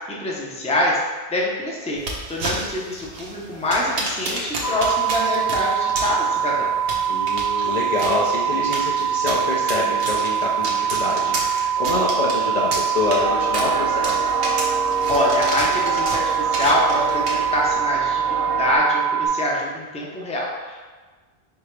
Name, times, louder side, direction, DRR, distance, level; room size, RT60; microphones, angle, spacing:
voice 1, 0.1-1.0 1.3-2.0 2.3-6.7 15.1-17.2 17.5-18.2 18.6-20.9, left 1 dB, 10° left, -4 dB, 0.6 m, -24 dB
sound 1, 2.0-17.7, right 2 dB, 70° right, 1.0 m, -32 dB
sound 2, 4.6-19.3, right 8 dB, 85° left, 0.9 m, -23 dB
voice 2, 7.1-14.2, left 2 dB, 50° left, -4 dB, 0.6 m, -26 dB
sound 3, 12.9-18.8, right 1 dB, 50° right, 0.7 m, -29 dB
4.7 x 3.5 x 3.2 m, 1.4 s
omnidirectional pair, 1.0 m